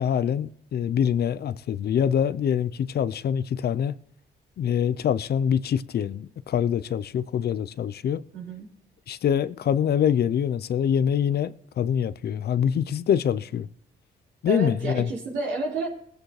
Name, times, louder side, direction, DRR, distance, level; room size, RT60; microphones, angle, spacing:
voice 1, 0.0-3.9 4.6-8.2 9.1-13.7 14.4-15.1, left 8 dB, 60° left, 0.6 m, -25 dB
voice 2, 8.3-8.7 14.5-15.9, right 3 dB, 80° right, 4.6 m, -30 dB
20.0 x 9.1 x 3.2 m
supercardioid pair, 65°, 19 cm